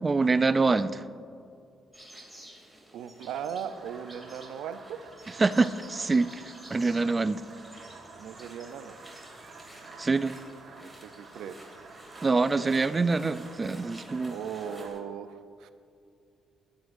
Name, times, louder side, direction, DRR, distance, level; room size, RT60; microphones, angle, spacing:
voice 1, 0.0-1.0 5.4-6.3 6.7-7.4 10.0-10.4 12.2-14.3, right 3 dB, 25° right, 13 dB, 0.4 m, -25 dB
sound 1, 1.9-15.0, right 1 dB, ahead, 2.8 m, -51 dB
voice 2, 2.9-5.0 8.2-9.0 10.8-11.6 14.3-15.7, right 8 dB, 85° right, 10 dB, 0.6 m, -38 dB
sound 2, 3.6-14.9, right 3 dB, 55° right, 2.9 m, -50 dB
15.5 x 11.5 x 2.6 m, 2.4 s
cardioid pair, 90°, 0 cm